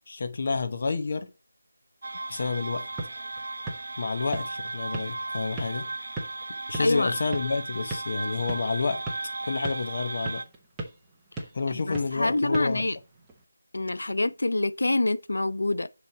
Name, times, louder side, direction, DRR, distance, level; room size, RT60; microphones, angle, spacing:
voice 1, 0.1-1.3 2.3-2.9 4.0-5.9 6.7-9.0 9.4-10.4 11.5-12.9, left 4 dB, 40° left, 0.9 m, -29 dB
sound 1, 2.0-10.4, right 2 dB, 60° right, 0.6 m, -36 dB
sound 2, 2.7-13.4, right 2 dB, 5° right, 0.8 m, -41 dB
voice 2, 6.8-7.1 11.7-13.0 13.7-15.9, left 2 dB, 80° left, 0.6 m, -26 dB
6.8 x 3.1 x 5.9 m
figure-of-eight pair, 175°, 0 cm